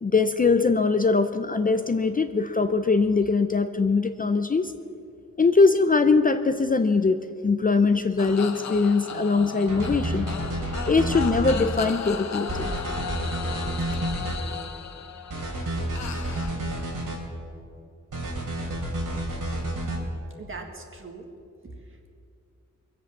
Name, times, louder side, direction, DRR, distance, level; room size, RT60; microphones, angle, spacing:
voice 1, 0.0-4.7 5.4-10.3 10.9-12.7, left 4 dB, 30° left, 9 dB, 0.5 m, -22 dB
sound 1, 8.2-16.5, left 6 dB, 60° left, 0.9 m, -36 dB
sound 2, 9.7-11.6 12.5-14.4 15.3-17.2 18.1-20.0, right 1 dB, 85° right, 3.2 m, -30 dB
voice 2, 20.4-21.3 21.6-22.1, right 3 dB, 40° right, 4 dB, 1.8 m, -41 dB
23.0 x 8.2 x 7.2 m, 2.4 s
wide cardioid pair, 170°, 30 cm